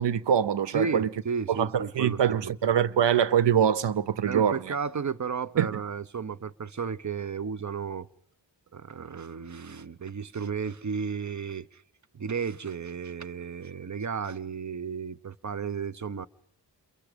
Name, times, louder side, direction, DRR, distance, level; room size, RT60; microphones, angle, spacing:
voice 1, 0.0-1.1 1.5-4.7 5.6-5.8, right 8 dB, 70° right, 0.8 m, -24 dB
voice 2, 0.7-2.5 4.3-8.1 8.7-11.8 12.1-16.3, right 6 dB, 40° right, 0.9 m, -33 dB
28.5 x 23.0 x 5.2 m
cardioid pair, 55°, 44 cm